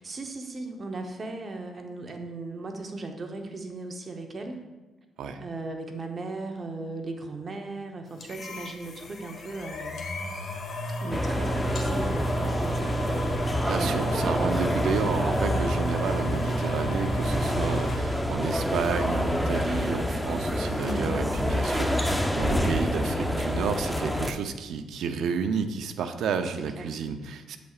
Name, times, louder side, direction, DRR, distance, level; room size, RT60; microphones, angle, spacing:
voice 1, 0.0-4.6 5.4-9.9 11.0-14.6 20.8-21.2 26.7-26.9, right 3 dB, 40° right, 4 dB, 0.9 m, -37 dB
sound 1, 8.2-18.0, right 1 dB, 55° left, 1.5 m, -32 dB
sound 2, 11.1-24.3, equal, 5° left, 0.7 m, -28 dB
voice 2, 13.7-27.6, right 6 dB, 75° right, 8 dB, 0.6 m, -31 dB
8.2 x 7.9 x 2.4 m, 1.1 s
cardioid pair, 90°, 0 cm